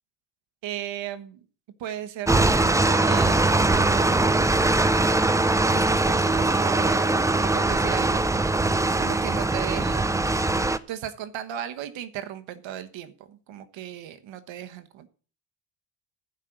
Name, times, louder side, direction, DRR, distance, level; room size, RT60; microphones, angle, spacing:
voice 1, 0.6-1.4 1.8-4.7 5.7-7.1 7.4-8.3 9.0-10.3 10.6-15.1, right 11 dB, 80° right, 1.3 m, -36 dB
sound 1, 2.3-10.8, right 2 dB, 5° right, 0.5 m, -21 dB
11.5 x 5.5 x 7.8 m
cardioid pair, 125°, 44 cm